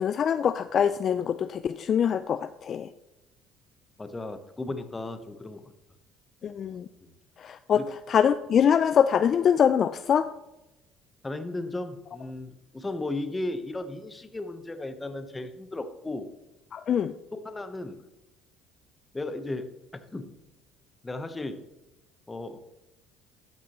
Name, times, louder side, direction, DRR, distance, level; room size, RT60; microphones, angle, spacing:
voice 1, 0.0-2.9 6.4-6.9 7.4-10.3 16.7-17.1, left 8 dB, 50° left, 12 dB, 0.3 m, -24 dB
voice 2, 4.0-5.7 7.0-7.1 7.7-7.9 11.2-16.3 17.3-18.0 19.1-19.7 20.1-20.3 21.0-21.6 22.3-22.6, left 2 dB, 20° left, 10 dB, 0.9 m, -35 dB
13.0 x 6.0 x 3.0 m, 0.97 s
supercardioid pair, 75°, 0 cm